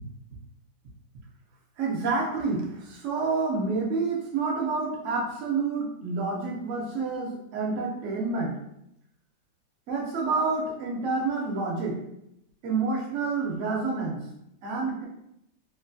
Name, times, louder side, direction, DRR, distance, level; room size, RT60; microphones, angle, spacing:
voice 1, 1.8-8.6 9.9-12.0 12.6-14.3 14.6-15.0, right 4 dB, 75° right, -2 dB, 0.6 m, -28 dB
3.0 x 2.4 x 2.6 m, 0.81 s
omnidirectional pair, 2.1 m